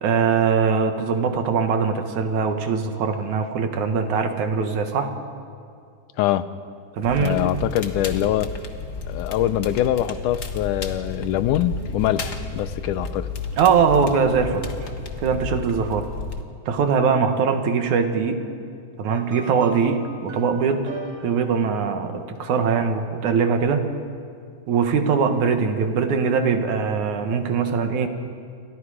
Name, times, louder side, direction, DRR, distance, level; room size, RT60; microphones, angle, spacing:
voice 1, 0.0-5.1 6.9-7.4 13.6-14.7 15.2-16.1 16.7-18.4 19.0-20.8 21.2-23.8 24.7-28.1, right 6 dB, 70° right, 6 dB, 2.8 m, -21 dB
voice 2, 6.2-6.5 7.2-8.5 9.1-13.3, left 12 dB, 80° left, 13 dB, 2.2 m, -23 dB
Crackle, 7.0-16.4, left 4 dB, 50° left, 0.9 m, -33 dB
sound 1, 19.1-22.5, right 2 dB, 45° right, 4.9 m, -41 dB
29.0 x 24.5 x 5.0 m, 2.3 s
omnidirectional pair, 3.6 m